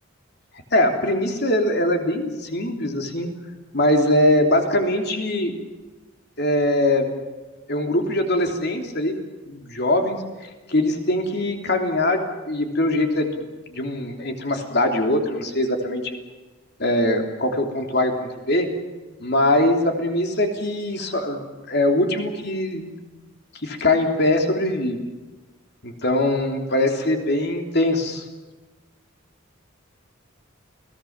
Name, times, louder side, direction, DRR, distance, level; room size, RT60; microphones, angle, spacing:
voice 1, 0.7-3.3 3.7-5.5 6.4-7.1 7.7-9.2 9.5-13.4 13.7-16.2 16.8-18.7 19.2-23.0 23.5-25.0 25.8-28.3, left 1 dB, 50° left, 4 dB, 3.3 m, -22 dB
29.0 x 18.5 x 7.4 m, 1.2 s
head